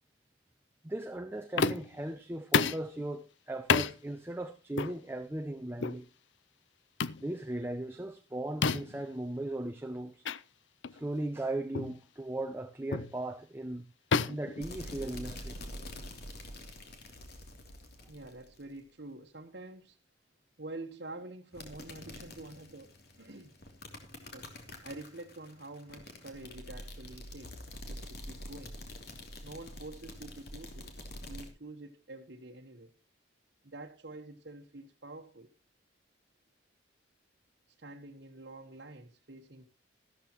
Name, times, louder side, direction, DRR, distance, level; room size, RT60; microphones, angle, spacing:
voice 1, 0.8-6.1 7.2-10.2 10.9-13.9 14.3-15.6, right 1 dB, 10° right, 0.7 m, -37 dB
sound 1, 1.6-2.0 2.5-2.9 3.7-3.9 4.8-5.0 5.8-6.0 7.0-7.2 8.6-9.0 10.2-10.4 10.8-11.0 11.7-12.0 12.9-13.2 14.1-15.3, left 5 dB, 70° left, 0.6 m, -30 dB
sound 2, 14.6-18.8 21.5-31.5, left 1 dB, 55° left, 3.0 m, -46 dB
voice 2, 18.1-20.0 20.6-23.5 24.2-24.5 24.8-28.8 29.4-32.9 33.6-35.5 37.8-39.6, right 2 dB, 60° right, 1.3 m, -47 dB
14.0 x 13.0 x 3.0 m
head